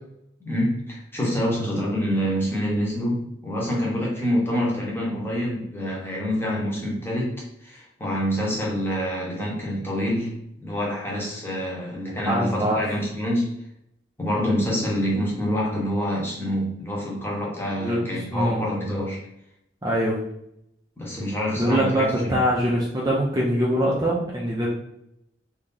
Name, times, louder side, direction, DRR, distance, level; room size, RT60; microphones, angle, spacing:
voice 1, 0.4-13.6 14.2-19.2 21.0-22.4, equal, 15° left, -4 dB, 1.0 m, -26 dB
voice 2, 12.3-12.8 17.8-18.7 19.8-20.2 21.6-24.7, equal, 20° right, -4 dB, 0.5 m, -23 dB
3.1 x 2.7 x 3.8 m, 0.78 s
head